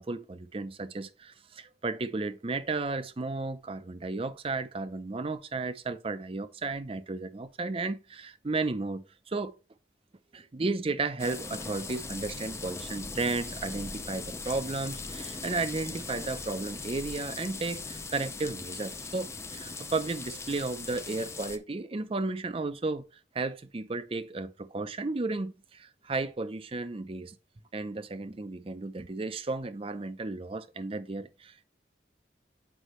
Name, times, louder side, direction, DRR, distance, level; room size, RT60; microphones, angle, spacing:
voice 1, 0.0-9.5 10.3-23.1 23.3-27.4 27.7-31.7, right 3 dB, 30° right, 0.5 m, -34 dB
sound 1, 11.2-21.6, left 3 dB, 15° left, 0.5 m, -40 dB
8.2 x 5.1 x 3.1 m
head